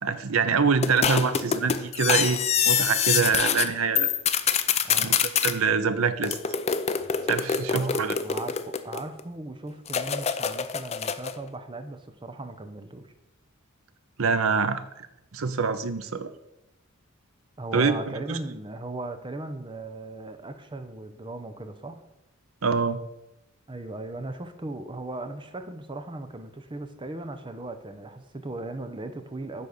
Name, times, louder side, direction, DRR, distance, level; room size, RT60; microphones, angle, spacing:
voice 1, 0.0-2.4 2.6-4.1 5.0-5.2 5.4-6.4 7.3-8.2 14.2-14.8 15.3-16.3 17.7-18.0 18.3-18.4 22.6-23.0, right 5 dB, 75° right, 12 dB, 0.7 m, -25 dB
sound 1, 0.8-3.7 3.9-5.5 6.2-9.2 9.9-11.4, left 7 dB, 30° left, 0.5 m, -25 dB
voice 2, 7.7-13.1 17.6-22.0 23.7-29.7, right 2 dB, 25° right, 8 dB, 0.8 m, -37 dB
10.5 x 4.1 x 6.6 m, 0.89 s
head